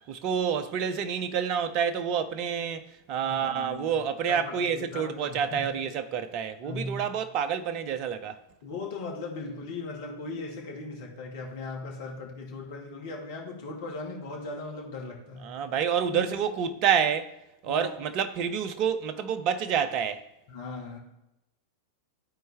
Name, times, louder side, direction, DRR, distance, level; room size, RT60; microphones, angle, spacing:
voice 1, 0.0-8.4 15.4-17.3 17.6-20.2, right 7 dB, 40° right, 0.6 m, -28 dB
voice 2, 3.2-4.0 4.3-5.9 6.6-7.1 8.6-15.6 16.1-16.4 17.7-18.0 20.5-21.0, left 3 dB, 50° left, 1.9 m, -38 dB
13.0 x 4.4 x 3.4 m
figure-of-eight pair, 90°, 0 cm